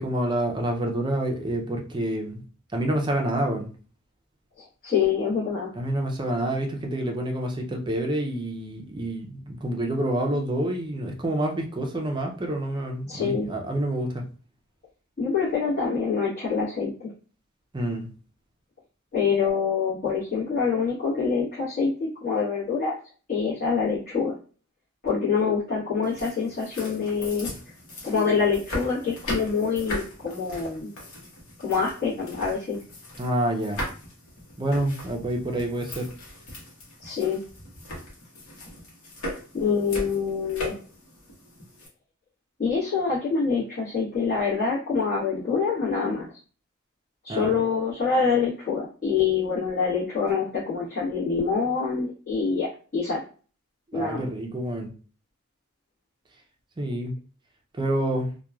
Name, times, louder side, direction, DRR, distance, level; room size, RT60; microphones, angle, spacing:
voice 1, 0.0-2.4 2.7-3.7 5.7-14.2 17.7-18.1 33.2-33.8 34.6-36.1 47.3-47.5 53.9-54.9 56.8-57.1 57.8-58.3, right 1 dB, 20° right, 2 dB, 0.4 m, -27 dB
voice 2, 4.6-5.7 13.1-13.5 15.2-17.1 19.1-22.9 23.3-24.3 25.0-27.5 28.0-30.9 31.6-32.8 37.0-37.4 39.5-40.8 42.6-46.3 47.2-53.2 53.9-54.3, left 5 dB, 40° left, -11 dB, 1.2 m, -25 dB
sound 1, 26.0-41.9, left 1 dB, 70° left, 1.0 m, -39 dB
2.9 x 2.2 x 2.3 m, 0.38 s
head